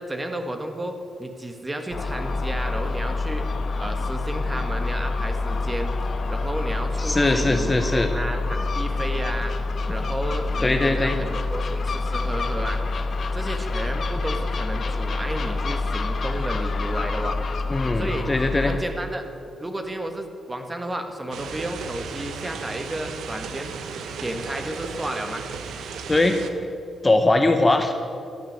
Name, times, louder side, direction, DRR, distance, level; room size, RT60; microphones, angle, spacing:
voice 1, 0.0-3.5 3.7-5.9 6.3-9.5 9.9-12.8 13.3-17.4 18.0-18.3 18.7-19.3 19.6-23.7 24.2-25.4, right 1 dB, 15° right, 5 dB, 1.5 m, -32 dB
Gull seagull, 1.9-18.8, left 3 dB, 50° left, 1.1 m, -27 dB
voice 2, 7.0-8.1 10.6-11.2 17.7-18.8 26.1-26.4 27.0-27.9, left 2 dB, 20° left, 6 dB, 0.9 m, -21 dB
sound 1, 21.3-26.5, right 5 dB, 90° right, 1.0 m, -35 dB
12.5 x 9.9 x 8.0 m, 2.5 s
cardioid pair, 100°, 0 cm